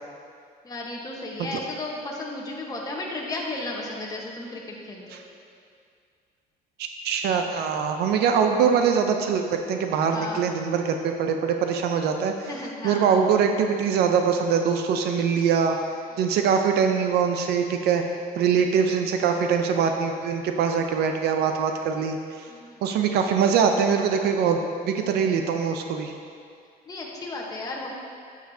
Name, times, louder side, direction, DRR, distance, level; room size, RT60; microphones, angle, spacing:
voice 1, 0.6-5.2 10.1-10.4 12.5-13.1 22.5-22.8 26.9-27.9, left 2 dB, 20° left, -2 dB, 1.2 m, -34 dB
voice 2, 6.8-12.6 12.8-15.8 16.2-18.0 18.4-22.5 22.8-24.6 24.8-26.1, right 6 dB, 75° right, 5 dB, 0.6 m, -23 dB
10.0 x 7.3 x 2.7 m, 2.3 s
cardioid pair, 110°, 17 cm